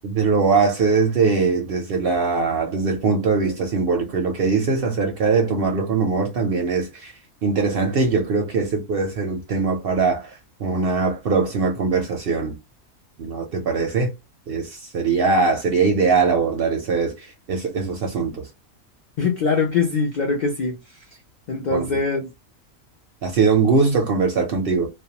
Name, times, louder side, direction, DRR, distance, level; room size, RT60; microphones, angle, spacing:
voice 1, 0.0-7.1 7.4-12.6 13.2-14.1 14.5-18.5 21.7-22.0 23.2-24.9, right 4 dB, 60° right, 0.6 m, -21 dB
voice 2, 19.2-20.8 21.5-22.3, left 4 dB, 65° left, 0.4 m, -22 dB
2.4 x 2.2 x 2.7 m
omnidirectional pair, 1.4 m